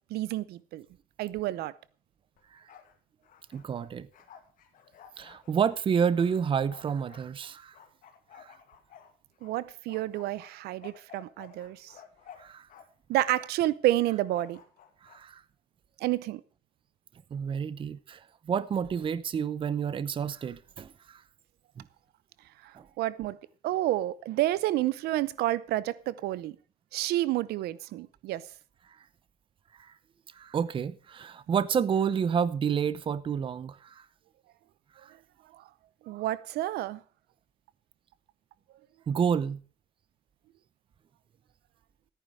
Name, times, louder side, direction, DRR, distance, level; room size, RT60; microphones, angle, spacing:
voice 1, 0.1-0.8 1.2-1.7 9.4-11.9 13.1-14.6 16.0-16.4 22.6-23.4 23.6-26.6 26.9-28.5 35.5-35.6 36.1-37.0, right 15 dB, 80° right, 0.7 m, -29 dB
Bark, 2.4-2.9 3.2-7.2 7.7-9.5 9.9-12.8 13.1-13.6 14.3-15.2, left 8 dB, 60° left, 2.4 m, -53 dB
voice 2, 3.5-4.1 5.2-7.7 8.3-8.5 12.4-12.7 15.0-15.4 17.3-21.2 21.8-21.9 22.8-22.9 29.8-29.9 30.3-34.0 35.0-35.1 39.1-39.6, right 7 dB, 35° right, 0.7 m, -29 dB
14.0 x 9.4 x 4.9 m
cardioid pair, 140°, 16 cm